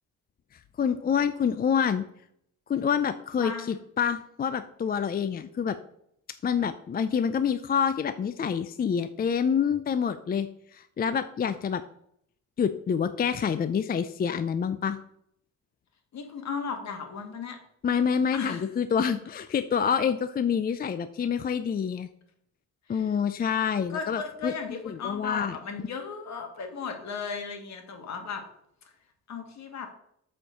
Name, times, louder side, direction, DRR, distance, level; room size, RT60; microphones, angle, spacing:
voice 1, 0.8-2.0 2.7-5.8 6.4-11.8 12.6-15.0 17.8-22.1 22.9-25.6, left 7 dB, 30° left, 11 dB, 0.5 m, -27 dB
voice 2, 3.4-3.8 16.1-17.6 18.3-18.6 22.9-23.2 23.9-28.4 29.3-29.9, left 5 dB, 65° left, 5 dB, 2.0 m, -36 dB
8.4 x 4.4 x 6.7 m, 0.73 s
cardioid pair, 90°, 30 cm